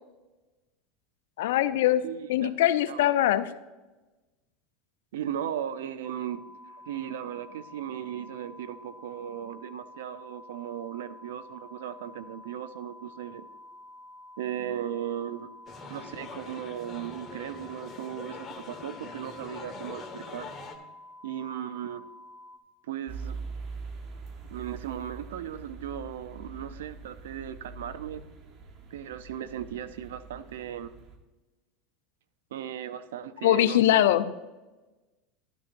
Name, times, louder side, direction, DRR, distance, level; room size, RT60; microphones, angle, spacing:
voice 1, 1.4-2.0 2.3-3.5 33.4-34.3, left 13 dB, 75° left, 13 dB, 0.5 m, -22 dB
voice 2, 2.0-2.5 2.8-3.1 5.1-6.4 6.9-13.4 14.4-15.5 15.9-20.5 21.2-22.0 22.9-23.4 24.5-28.2 28.9-30.9 32.5-34.0, right 10 dB, 80° right, 13 dB, 0.5 m, -37 dB
sound 1, 6.0-22.6, left 1 dB, 15° right, 2.3 m, -49 dB
sound 2, 15.7-20.8, left 4 dB, 30° left, 1.4 m, -44 dB
sound 3, 23.1-31.1, right 4 dB, 50° right, 1.4 m, -43 dB
11.5 x 10.0 x 2.6 m, 1.1 s
hypercardioid pair, 95°, 0 cm